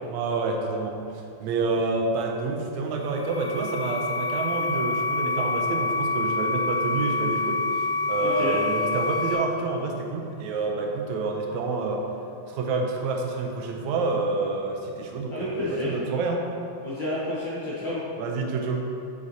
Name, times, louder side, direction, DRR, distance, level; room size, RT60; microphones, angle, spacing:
voice 1, 0.1-12.0 12.5-16.5 18.2-18.9, right 3 dB, 80° right, 1 dB, 2.0 m, -28 dB
sound 1, 2.8-9.3, left 2 dB, 50° left, 2.0 m, -27 dB
voice 2, 8.2-8.6 15.3-15.9 16.8-18.0, left 1 dB, 65° left, -8 dB, 1.1 m, -30 dB
8.0 x 6.6 x 2.8 m, 2.5 s
omnidirectional pair, 3.4 m